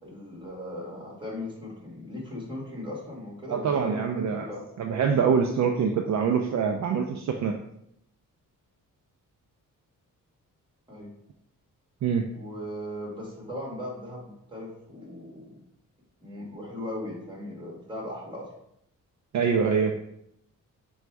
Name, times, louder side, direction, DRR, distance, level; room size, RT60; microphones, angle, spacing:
voice 1, 0.0-4.6 10.9-11.1 12.3-15.6 16.2-18.5, left 1 dB, 15° right, -3 dB, 1.6 m, -38 dB
voice 2, 3.5-4.5 4.8-7.6 12.0-12.2 19.3-19.9, right 6 dB, 55° right, 4 dB, 0.4 m, -24 dB
5.0 x 2.3 x 4.5 m, 0.76 s
cardioid pair, 115°, 33 cm